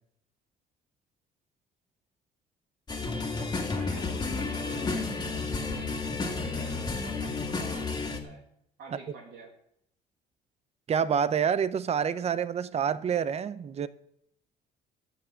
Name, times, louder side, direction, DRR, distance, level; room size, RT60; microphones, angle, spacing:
sound 1, 2.9-8.2, left 3 dB, 25° left, 2.1 m, -31 dB
voice 1, 3.7-5.9 6.2-8.4 8.8-9.5, right 4 dB, 70° right, 2.4 m, -47 dB
voice 2, 10.9-13.9, right 7 dB, 40° right, 0.7 m, -27 dB
13.5 x 6.9 x 7.3 m
cardioid pair, 110°, 17 cm